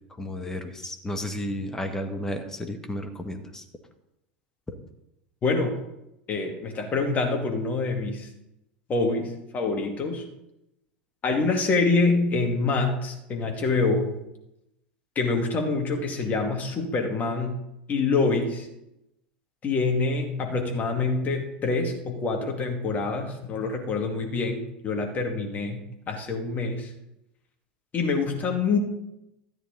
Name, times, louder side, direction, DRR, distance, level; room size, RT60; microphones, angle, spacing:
voice 1, 0.1-3.6 4.7-4.8, left 1 dB, 10° left, 5 dB, 1.6 m, -33 dB
voice 2, 5.4-5.7 6.3-8.3 8.9-10.3 11.2-14.1 15.2-17.5 17.9-18.7 19.6-25.8 26.1-26.9 27.9-28.8, left 3 dB, 30° left, 2 dB, 2.3 m, -26 dB
13.5 x 9.2 x 4.0 m, 0.88 s
figure-of-eight pair, 85°, 5 cm